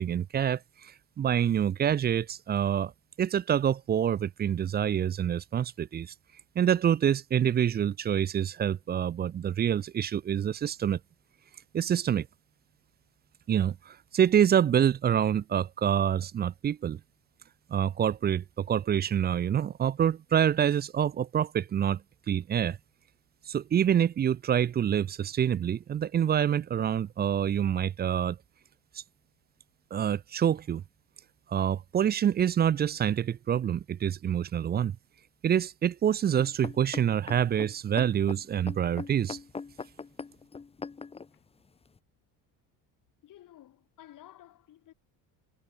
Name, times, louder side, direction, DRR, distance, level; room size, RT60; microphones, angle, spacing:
voice 1, 0.0-2.9 3.2-6.1 6.6-11.0 11.7-12.3 13.5-17.0 17.7-22.0 22.3-22.8 23.5-28.4 29.9-30.8 31.5-35.0 35.4-39.4, right 9 dB, 25° right, 0.5 m, -26 dB
sound 1, 36.4-41.3 42.0-42.1, left 4 dB, 15° left, 1.0 m, -40 dB
voice 2, 43.2-44.9, left 13 dB, 50° left, 6.5 m, -53 dB
cardioid pair, 145°, 40 cm